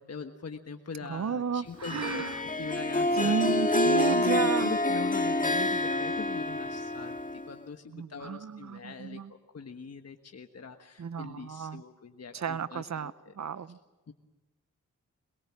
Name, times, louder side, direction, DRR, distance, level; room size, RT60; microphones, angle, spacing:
voice 1, 0.0-2.2 2.6-3.3 3.8-9.2 9.5-13.3 14.1-14.2, left 5 dB, 55° left, 5 dB, 1.5 m, -41 dB
voice 2, 1.0-2.4 3.1-4.7 7.9-9.3 11.0-11.8 12.3-13.8, right 7 dB, 65° right, 15 dB, 1.0 m, -32 dB
Harp, 1.8-7.6, left 1 dB, 25° left, 1.9 m, -28 dB
22.5 x 22.0 x 7.5 m, 1.2 s
cardioid pair, 40°, 31 cm